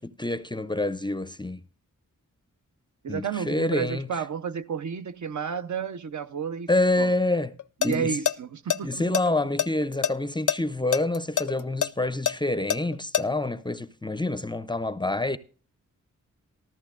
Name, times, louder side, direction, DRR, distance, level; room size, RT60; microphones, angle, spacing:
voice 1, 0.0-1.6 3.1-4.1 6.7-7.5 7.8-8.1 8.8-15.4, left 2 dB, 15° left, 0.5 m, -27 dB
voice 2, 3.0-6.7 7.0-7.2 7.8-9.0, right 6 dB, 60° right, 0.6 m, -31 dB
sound 1, 7.6-8.0 8.3-8.4 8.7-10.1 10.5-10.6 10.9-13.2, left 8 dB, 65° left, 0.5 m, -24 dB
14.0 x 13.5 x 2.4 m
wide cardioid pair, 85°, 32 cm